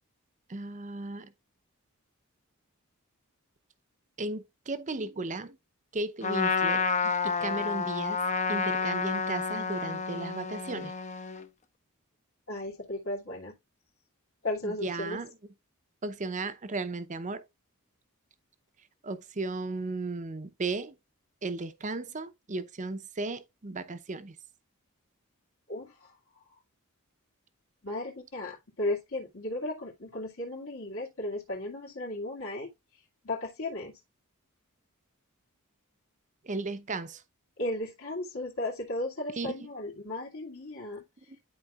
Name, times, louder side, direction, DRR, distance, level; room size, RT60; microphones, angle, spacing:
voice 1, 0.5-1.3 4.2-5.6 5.9-6.9 7.2-8.2 8.5-10.9 14.6-15.3 16.0-17.4 19.0-20.9 21.4-24.3 36.5-37.2 39.4-39.5, right 3 dB, 35° right, 0.7 m, -35 dB
Trumpet, 6.2-11.5, left 5 dB, 35° left, 0.7 m, -30 dB
voice 2, 12.5-13.5 14.4-15.2 25.7-26.1 27.8-32.7 33.2-33.9 37.6-41.0, left 1 dB, 65° left, 2.3 m, -35 dB
12.0 x 4.3 x 2.4 m
head